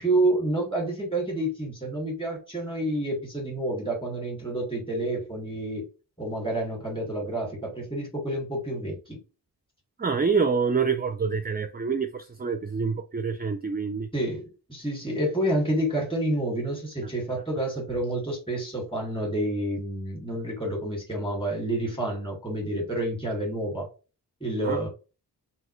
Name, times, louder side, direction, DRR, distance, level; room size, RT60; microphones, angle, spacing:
voice 1, 0.0-5.9 6.2-9.2 14.1-23.9 24.4-24.9, right 1 dB, 15° left, 2.0 m, -29 dB
voice 2, 10.0-14.1 24.6-24.8, right 5 dB, 25° right, 0.4 m, -26 dB
5.5 x 2.8 x 3.1 m
wide cardioid pair, 135°, 40 cm